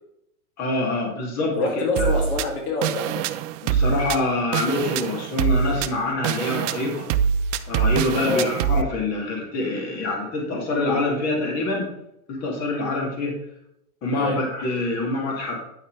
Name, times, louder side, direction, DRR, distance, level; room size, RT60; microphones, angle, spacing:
voice 1, 0.6-1.6 2.0-2.1 3.6-7.1 7.7-11.9 12.3-13.3 14.0-15.6, left 2 dB, 35° left, -1 dB, 2.8 m, -25 dB
voice 2, 1.5-3.3 8.2-8.5 14.2-14.4, left 3 dB, 80° left, 0 dB, 2.7 m, -25 dB
sound 1, 2.0-8.8, right 7 dB, 55° right, 0.6 m, -24 dB
9.3 x 8.5 x 3.3 m, 0.79 s
hypercardioid pair, 115°, 45 cm